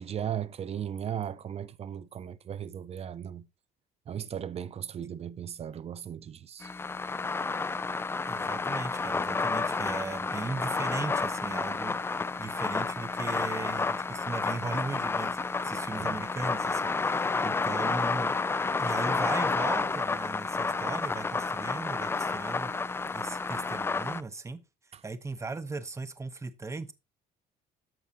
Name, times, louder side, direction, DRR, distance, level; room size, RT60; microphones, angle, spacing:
voice 1, 0.0-3.5 4.1-6.7 16.0-16.2 23.1-23.2 24.9-25.0, right 9 dB, 40° right, 0.6 m, -37 dB
sound 1, 6.6-24.2, left 4 dB, 15° left, 0.3 m, -30 dB
voice 2, 8.3-12.0 12.4-15.4 15.6-18.3 18.8-22.7 23.1-24.6 25.0-26.9, right 3 dB, 15° right, 0.9 m, -37 dB
13.5 x 4.8 x 2.8 m
cardioid pair, 110°, 17 cm